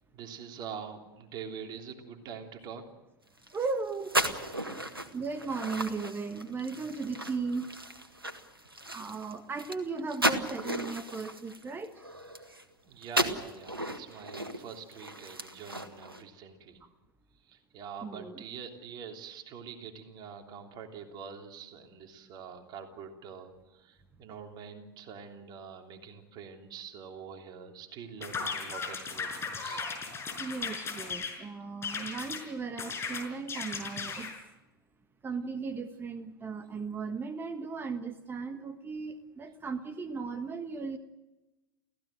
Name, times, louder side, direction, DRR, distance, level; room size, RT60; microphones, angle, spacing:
voice 1, 0.1-2.8 12.9-16.8 17.5-29.8, right 6 dB, 35° right, 3 dB, 3.3 m, -45 dB
sound 1, 3.4-12.7 13.0-16.2, right 1 dB, 85° right, 1.7 m, -35 dB
voice 2, 3.5-4.2 5.1-7.7 8.9-11.9 18.0-18.4 30.4-34.3 35.2-41.0, right 4 dB, 20° right, 9 dB, 1.4 m, -36 dB
sound 2, 28.2-31.4 31.8-32.4 32.8-34.4, left 5 dB, 20° left, 5.8 m, -36 dB
29.0 x 16.0 x 7.7 m, 1.0 s
figure-of-eight pair, 85°, 12 cm